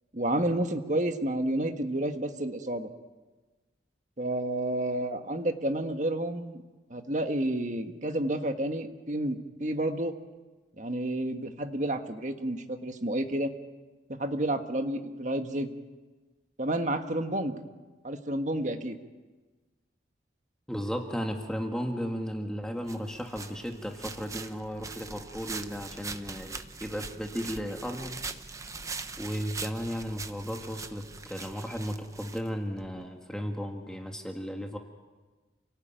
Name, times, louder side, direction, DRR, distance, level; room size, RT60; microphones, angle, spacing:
voice 1, 0.1-2.9 4.2-6.6 6.9-10.1 10.8-13.5 14.1-15.7 16.6-17.5 18.0-18.9, right 1 dB, 40° right, 6 dB, 1.6 m, -30 dB
voice 2, 20.7-28.2 29.2-34.8, equal, 5° left, 3 dB, 1.8 m, -35 dB
sound 1, 22.9-32.9, right 4 dB, 15° right, 0.9 m, -42 dB
29.0 x 18.0 x 9.1 m, 1.3 s
head